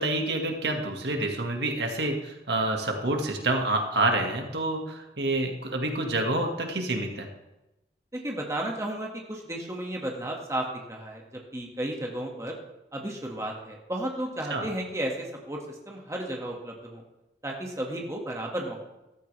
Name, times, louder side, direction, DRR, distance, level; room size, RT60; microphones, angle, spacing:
voice 1, 0.0-7.3 14.5-14.7, right 2 dB, 75° right, 3 dB, 1.9 m, -28 dB
voice 2, 8.2-11.2 11.5-12.6 12.9-15.6 15.9-17.0 17.4-18.8, right 1 dB, 15° right, 0 dB, 1.8 m, -33 dB
14.5 x 13.5 x 3.4 m, 0.97 s
head